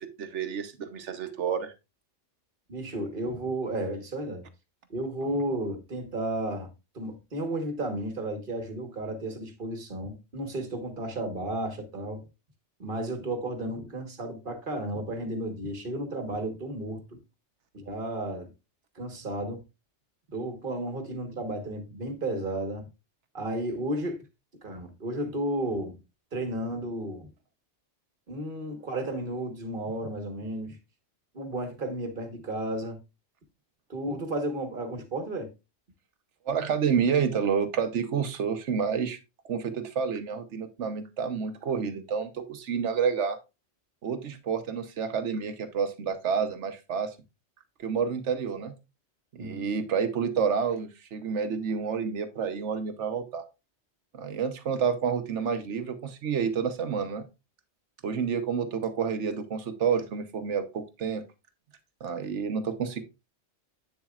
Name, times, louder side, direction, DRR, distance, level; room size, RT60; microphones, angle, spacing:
voice 1, 0.0-1.7 36.5-39.2 39.5-43.4 44.0-47.1 47.8-48.7 49.3-53.4 54.1-57.3 58.0-61.2 62.0-63.0, right 6 dB, 75° right, 1.3 m, -29 dB
voice 2, 2.7-4.4 4.9-6.7 6.9-12.2 12.8-17.0 17.7-18.5 18.9-19.6 20.3-22.8 23.3-24.2 24.6-26.0 26.3-27.3 28.3-30.8 31.3-33.0 33.9-35.5 49.4-49.6, right 1 dB, 50° right, 1.6 m, -33 dB
8.7 x 7.1 x 2.4 m
omnidirectional pair, 1.2 m